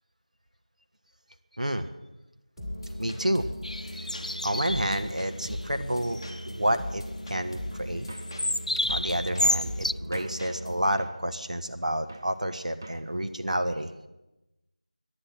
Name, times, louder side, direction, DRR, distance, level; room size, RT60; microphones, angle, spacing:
voice 1, 1.6-1.9 3.0-3.5 3.9-4.1 4.4-8.1 8.9-13.9, right 1 dB, 65° right, 8 dB, 1.2 m, -29 dB
sound 1, 2.6-10.9, equal, ahead, 1.1 m, -38 dB
sound 2, 3.6-5.0 5.4-5.6 5.9-6.6 8.1-9.9, left 1 dB, 65° left, 0.4 m, -30 dB
sound 3, 8.1-8.4 8.9-9.2 10.1-10.5 11.0-11.3 12.1-12.4 12.8-13.1, right 2 dB, 25° right, 0.6 m, -44 dB
22.5 x 10.5 x 5.9 m, 1.0 s
figure-of-eight pair, 175°, 4 cm